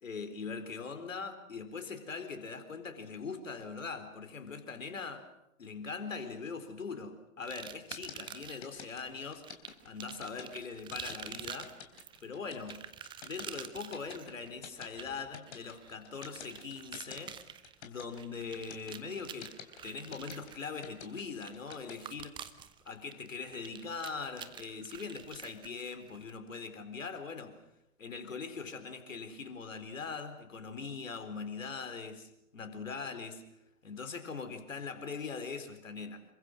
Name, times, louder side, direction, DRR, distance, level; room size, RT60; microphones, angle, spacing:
voice 1, 0.0-5.3 5.6-9.5 9.8-11.8 12.2-12.8 13.2-17.4 17.8-19.6 19.8-22.4 22.9-27.6 28.0-33.4 33.8-36.2, left 5 dB, 70° left, 4.1 m, -41 dB
sound 1, 7.5-8.7 9.4-26.3, right 9 dB, 10° right, 0.9 m, -48 dB
sound 2, 7.9-21.9, left 7 dB, 50° left, 3.8 m, -48 dB
27.0 x 24.0 x 6.3 m
figure-of-eight pair, 120°, 41 cm